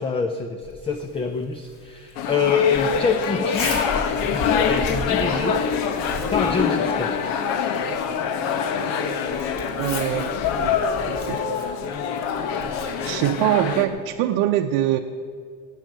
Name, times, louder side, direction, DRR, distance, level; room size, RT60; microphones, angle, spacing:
voice 1, 0.0-3.9 4.2-6.0 6.3-7.2, left 5 dB, 15° left, 7 dB, 0.4 m, -26 dB
Zipper (clothing), 0.6-14.2, left 2 dB, 40° left, 2.3 m, -37 dB
sound 1, 2.2-13.9, left 6 dB, 75° left, 1.3 m, -25 dB
voice 2, 9.8-10.8 11.1-11.5 13.0-15.0, right 12 dB, 90° right, 3 dB, 0.8 m, -23 dB
15.5 x 9.3 x 7.5 m, 2.2 s
cardioid pair, 180°, 34 cm